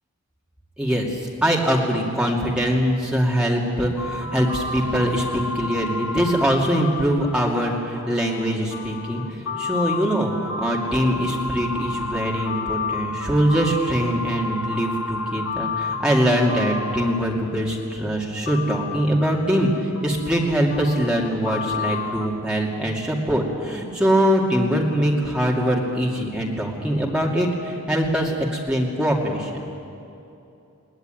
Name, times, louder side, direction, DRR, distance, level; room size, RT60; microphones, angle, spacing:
voice 1, 0.8-29.6, equal, 5° right, -3 dB, 2.5 m, -23 dB
sound 1, 4.0-17.8 18.5-22.3, left 3 dB, 70° left, 1.2 m, -31 dB
20.5 x 18.5 x 9.2 m, 2.8 s
head